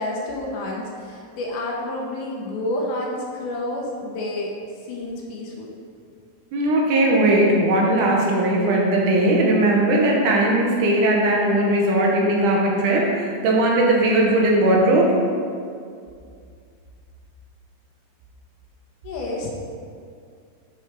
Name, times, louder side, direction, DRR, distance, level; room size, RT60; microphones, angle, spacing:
voice 1, 0.0-4.5 4.9-5.7 19.0-19.5, left 1 dB, 75° left, -2 dB, 2.2 m, -29 dB
voice 2, 6.5-15.1, right 1 dB, 70° right, -2 dB, 2.2 m, -18 dB
6.1 x 5.9 x 4.6 m, 2.3 s
omnidirectional pair, 3.9 m